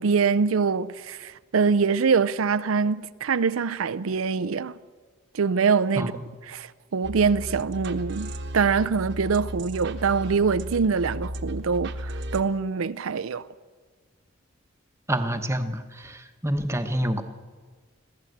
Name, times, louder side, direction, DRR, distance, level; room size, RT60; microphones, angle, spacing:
voice 1, 0.0-4.8 5.3-6.1 6.5-13.5, right 5 dB, 85° right, 0.5 m, -24 dB
sound 1, 7.0-12.4, right 1 dB, 60° right, 1.2 m, -35 dB
voice 2, 15.1-17.2, right 1 dB, 15° right, 1.0 m, -27 dB
22.0 x 15.5 x 7.9 m
head